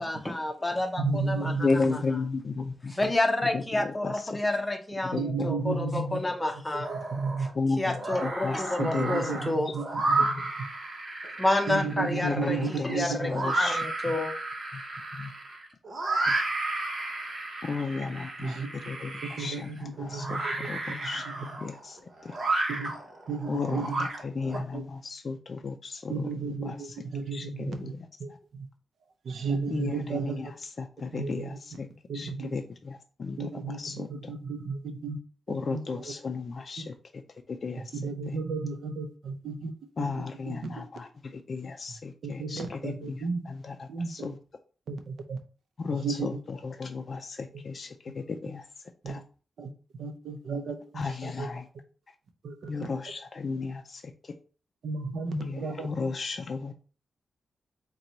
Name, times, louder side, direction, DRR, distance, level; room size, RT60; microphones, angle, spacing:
voice 1, 0.0-2.0 2.9-6.9 7.8-9.7 11.4-14.3, left 2 dB, 15° left, 0.7 m, -29 dB
voice 2, 1.0-1.7 5.1-6.2 6.7-7.5 8.8-9.8 10.1-10.3 10.6-10.7 11.7-13.3 18.4-18.7 19.4-20.6 20.9-21.0 22.7-22.9 23.3-24.1 24.5-24.8 26.1-27.9 28.2-28.7 29.3-30.4 31.1-31.5 32.1-32.6 33.4-35.2 35.7-36.0 36.8-36.9 37.9-39.7 40.0-40.1 40.5-40.7 42.2-43.4 43.9-44.3 44.9-45.4 46.0-46.4 49.0-49.2 49.6-49.7 50.0-50.8 51.2-51.5 52.4-52.7 54.8-56.1, right 4 dB, 80° right, 0.6 m, -33 dB
voice 3, 1.6-3.1 3.5-4.4 5.0-5.5 7.5-9.2 10.1-10.4 12.2-13.8 14.1-14.2 14.7-14.8 15.1-15.3 16.3-16.4 17.6-18.6 18.9-21.3 21.6-22.0 22.2-22.4 23.5-27.0 27.3-28.4 29.7-31.9 32.1-34.3 35.5-37.2 37.5-38.0 38.3-38.4 40.0-44.4 45.8-48.7 49.1-49.2 50.9-51.7 52.7-54.3 55.3-56.7, left 4 dB, 50° left, 0.3 m, -34 dB
sound 1, 6.8-7.5 7.9-24.6, right 2 dB, 50° right, 0.9 m, -32 dB
4.1 x 2.2 x 3.9 m
cardioid pair, 90°, 0 cm